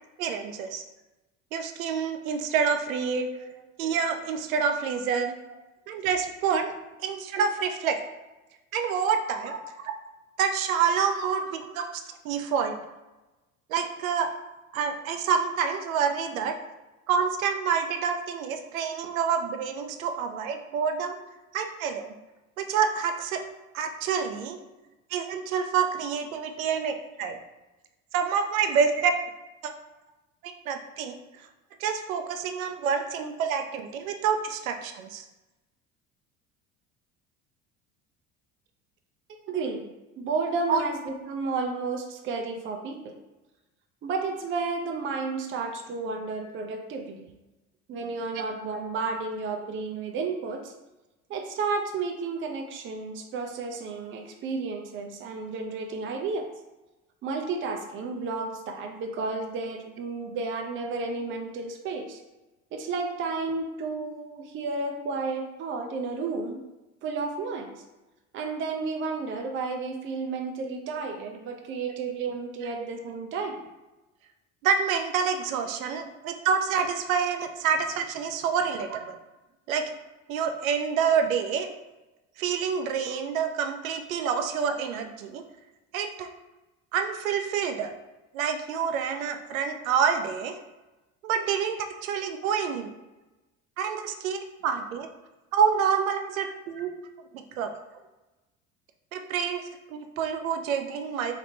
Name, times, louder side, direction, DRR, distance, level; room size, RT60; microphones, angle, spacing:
voice 1, 0.2-0.8 1.5-3.3 3.8-5.4 5.9-8.0 8.7-9.5 10.4-12.8 13.7-14.3 14.7-16.5 17.1-21.2 21.5-22.1 22.6-23.4 23.7-24.6 25.1-27.4 28.1-29.1 29.6-29.7 30.4-31.2 31.8-35.2 40.7-40.8 74.6-79.2 79.7-79.9 80.3-81.7 82.4-85.4 85.9-86.3 86.9-87.9 88.3-90.5 91.2-92.9 93.8-95.1 95.5-96.9 97.6-97.7 99.1-99.6 99.9-101.3, right 6 dB, 75° right, 6 dB, 0.5 m, -27 dB
voice 2, 39.5-39.9 40.2-43.2 44.0-47.3 47.9-50.7 51.3-56.5 57.2-62.2 62.7-66.6 67.0-67.7 68.3-73.6 76.2-76.3 78.9-79.0, right 4 dB, 30° right, 3 dB, 0.5 m, -32 dB
3.5 x 2.8 x 2.7 m, 1.1 s
figure-of-eight pair, 65°, 41 cm